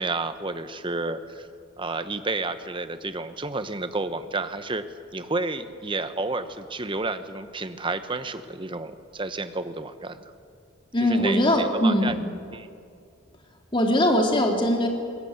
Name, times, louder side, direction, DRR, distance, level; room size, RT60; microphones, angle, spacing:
voice 1, 0.0-1.5 1.8-4.8 5.1-10.2 11.0-12.2 12.5-12.7, right 3 dB, 25° right, 10 dB, 1.1 m, -31 dB
voice 2, 10.9-12.2 13.7-14.9, left 1 dB, 25° left, 2 dB, 3.0 m, -21 dB
21.5 x 18.5 x 9.6 m, 2.3 s
head